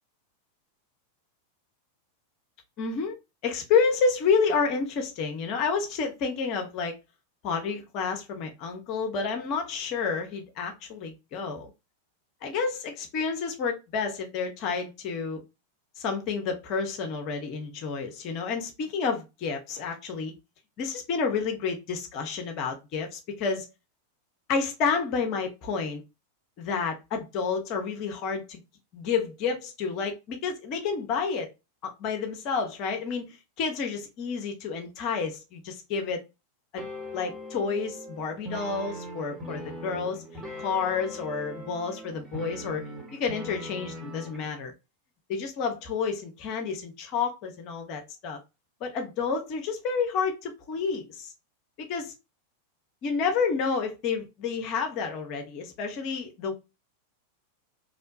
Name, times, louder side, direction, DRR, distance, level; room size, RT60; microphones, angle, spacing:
voice 1, 2.8-3.2 3.4-6.9 7.4-11.7 12.4-15.4 16.0-20.3 20.8-23.7 24.5-26.0 26.6-28.6 28.9-31.5 31.8-33.3 33.6-36.2 36.7-36.8 37.1-40.2 40.6-44.7 45.3-48.4 48.8-51.3 51.8-52.1 53.0-56.5, left 5 dB, 40° left, 0.6 m, -30 dB
sound 1, 36.8-44.5, equal, 15° right, 1.1 m, -40 dB
2.7 x 2.1 x 2.5 m
figure-of-eight pair, 90°, 0 cm